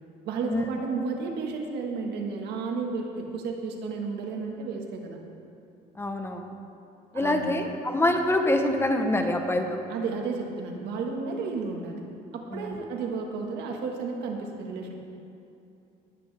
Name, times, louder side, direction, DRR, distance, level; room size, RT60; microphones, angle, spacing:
voice 1, 0.2-5.2 7.1-7.6 9.9-12.0 12.3-14.9, right 4 dB, 80° right, 2 dB, 1.7 m, -32 dB
voice 2, 6.0-6.5 7.1-9.8 12.5-12.7, left 1 dB, 15° left, 4 dB, 1.0 m, -25 dB
19.0 x 8.8 x 3.5 m, 2.7 s
cardioid pair, 110°, 17 cm